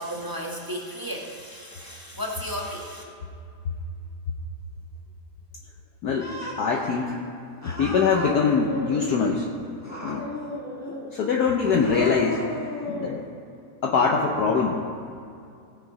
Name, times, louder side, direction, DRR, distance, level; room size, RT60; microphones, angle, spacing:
voice 1, 0.0-3.0, equal, 15° right, -2 dB, 0.9 m, -34 dB
voice 2, 6.0-7.2 7.6-9.5 10.0-10.3 11.1-12.4 12.9-13.2 13.8-14.8, left 5 dB, 60° left, 0 dB, 1.2 m, -23 dB
Cat, 6.2-6.9 7.6-9.3 9.8-11.1 11.7-13.2, left 1 dB, 10° left, 1.3 m, -34 dB
17.5 x 7.2 x 4.9 m, 2.5 s
omnidirectional pair, 2.1 m